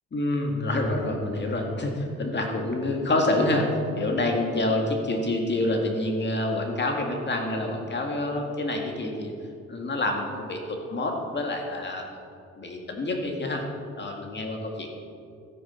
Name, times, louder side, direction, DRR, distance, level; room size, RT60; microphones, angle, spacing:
voice 1, 0.1-3.7 4.0-9.3 9.7-12.0 12.6-13.6 14.0-14.9, left 2 dB, 35° left, 2 dB, 2.1 m, -27 dB
13.5 x 9.9 x 4.5 m, 2.4 s
cardioid pair, 90°, 30 cm